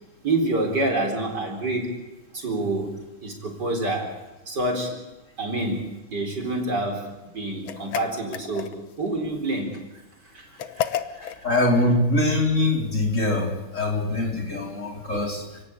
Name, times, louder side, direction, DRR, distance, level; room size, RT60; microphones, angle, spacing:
voice 1, 0.2-1.9 2.3-2.9 3.2-4.1 4.5-5.0 5.4-7.1 7.3-9.7 10.3-10.5 10.8-11.4, right 2 dB, 55° right, 3 dB, 4.8 m, -27 dB
sound 1, 7.6-9.0 10.6-11.4, left 9 dB, 85° left, 1.9 m, -31 dB
voice 2, 11.4-15.4, left 2 dB, 35° left, -1 dB, 5.2 m, -23 dB
30.0 x 18.0 x 8.3 m, 1.0 s
omnidirectional pair, 2.2 m